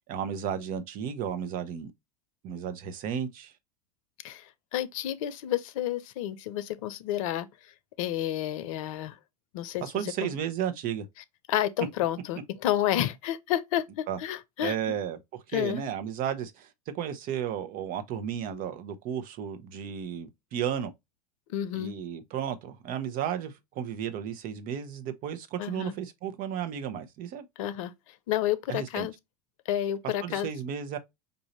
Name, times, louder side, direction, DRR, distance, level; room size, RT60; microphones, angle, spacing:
voice 1, 0.1-1.9 2.4-3.5 9.8-11.1 14.1-14.2 14.6-20.9 21.7-27.4 28.7-29.1 30.0-31.0, right 9 dB, 45° right, 1.0 m, -33 dB
voice 2, 4.2-7.5 8.0-9.2 9.5-9.8 10.2-10.3 11.5-14.8 15.5-15.8 21.5-21.9 25.6-25.9 27.6-27.9 28.3-29.1 29.7-30.5, left 12 dB, 60° left, 0.7 m, -30 dB
5.4 x 2.7 x 2.9 m
hypercardioid pair, 85°, 19 cm